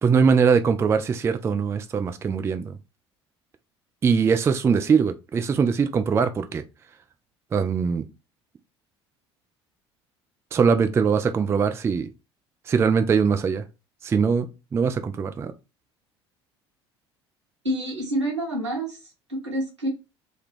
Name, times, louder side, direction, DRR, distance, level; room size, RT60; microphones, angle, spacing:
voice 1, 0.0-2.8 4.0-6.6 7.5-8.1 10.5-12.1 12.7-13.6 14.0-15.5, right 6 dB, 20° right, 0.3 m, -22 dB
voice 2, 17.6-19.9, right 1 dB, 85° right, 1.3 m, -28 dB
3.6 x 2.3 x 3.1 m
figure-of-eight pair, 65°, 15 cm